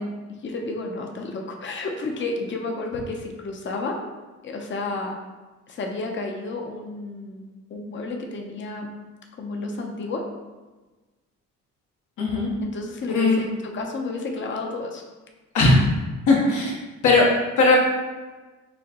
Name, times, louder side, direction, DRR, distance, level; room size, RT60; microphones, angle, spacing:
voice 1, 0.0-4.0 4.4-5.1 5.7-7.4 7.7-8.9 9.4-10.2 12.6-13.5 13.7-15.0, left 2 dB, 40° left, 1 dB, 0.7 m, -31 dB
voice 2, 12.2-12.5 13.1-13.4 15.5-15.8 16.3-16.7 17.0-17.8, left 3 dB, 75° left, -2 dB, 1.2 m, -18 dB
6.2 x 2.2 x 2.9 m, 1.2 s
cardioid pair, 90°, 30 cm